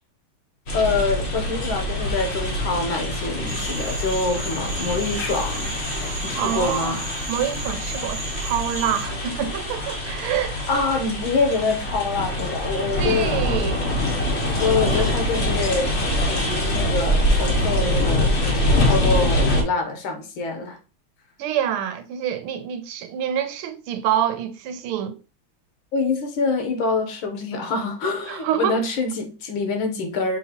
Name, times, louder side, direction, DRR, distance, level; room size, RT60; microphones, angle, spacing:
voice 1, 0.7-7.3 10.7-13.4 14.6-15.9 16.3-20.8 25.9-30.4, left 3 dB, 75° left, 1.6 m, -25 dB
sound 1, 0.7-19.6, left 1 dB, 45° left, 0.8 m, -24 dB
Cricket / Frog, 3.5-9.1, right 4 dB, 65° right, 1.4 m, -36 dB
voice 2, 6.3-7.0 7.3-10.7 13.0-13.8 21.4-25.2 28.3-28.8, right 10 dB, 90° right, 1.5 m, -26 dB
5.3 x 2.9 x 2.8 m
omnidirectional pair, 2.4 m